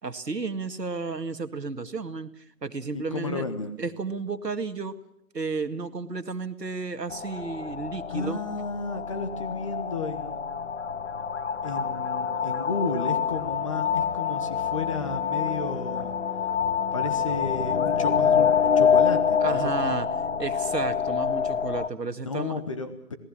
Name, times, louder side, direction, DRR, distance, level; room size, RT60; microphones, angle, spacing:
voice 1, 0.0-2.3 2.6-3.4 3.8-5.0 5.3-8.4 19.4-20.1 20.4-22.6, right 4 dB, 80° right, 9 dB, 2.1 m, -32 dB
voice 2, 2.9-3.7 8.1-10.4 11.6-16.1 16.9-20.1 22.2-23.2, left 3 dB, 20° left, 10 dB, 1.2 m, -33 dB
sound 1, 7.1-21.9, left 7 dB, 50° left, 0.9 m, -26 dB
27.0 x 18.5 x 7.4 m, 0.76 s
figure-of-eight pair, 155°, 48 cm